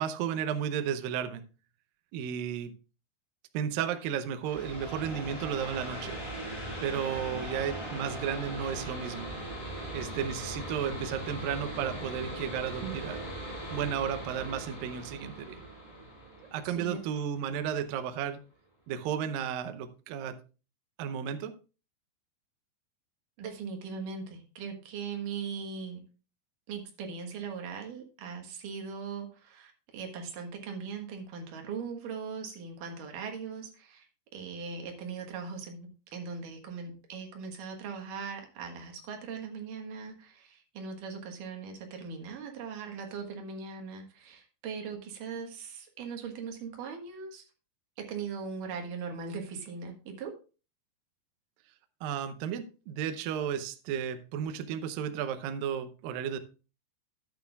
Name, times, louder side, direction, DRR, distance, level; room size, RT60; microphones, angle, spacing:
voice 1, 0.0-1.4 2.1-2.7 3.5-6.2 6.8-9.3 9.9-13.2 13.7-15.6 16.5-18.4 18.9-20.4 21.0-21.5 52.0-56.4, right 8 dB, 90° right, 9 dB, 2.0 m, -33 dB
sound 1, 4.4-17.8, right 1 dB, 15° left, 5.8 m, -40 dB
voice 2, 23.4-26.0 26.7-34.1 34.3-47.4 48.1-50.3, right 5 dB, 60° right, 3 dB, 2.6 m, -40 dB
12.5 x 9.0 x 2.3 m, 0.33 s
omnidirectional pair, 5.1 m